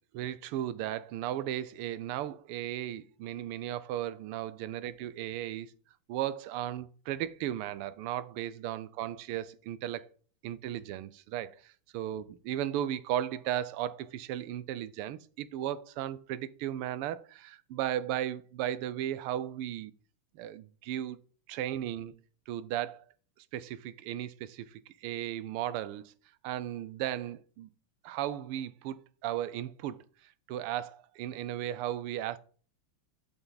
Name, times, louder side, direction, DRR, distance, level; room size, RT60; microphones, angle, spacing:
voice 1, 0.1-5.7 6.1-10.1 10.4-19.9 20.3-21.2 21.5-22.2 22.5-23.0 23.5-26.1 26.4-27.7 28.0-29.0 29.2-30.0 30.5-32.4, right 12 dB, 85° right, 1.5 m, -35 dB
7.9 x 5.9 x 4.0 m
omnidirectional pair, 2.4 m